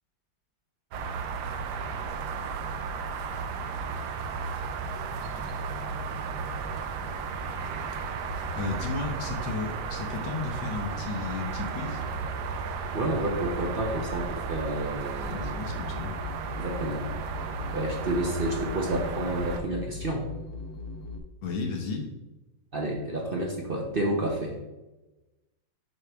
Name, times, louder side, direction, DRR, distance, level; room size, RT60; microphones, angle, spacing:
sound 1, 0.9-19.6, right 5 dB, 70° right, 1.1 m, -34 dB
voice 1, 8.6-12.1 15.3-16.1 21.4-22.1, left 4 dB, 80° left, 2 dB, 2.0 m, -33 dB
voice 2, 12.9-15.6 16.6-17.0 17.7-20.3 22.7-24.6, right 1 dB, 50° right, 0 dB, 0.7 m, -30 dB
sound 2, 15.2-21.2, left 3 dB, 60° left, 1.1 m, -39 dB
6.7 x 5.8 x 3.4 m, 1.0 s
omnidirectional pair, 2.2 m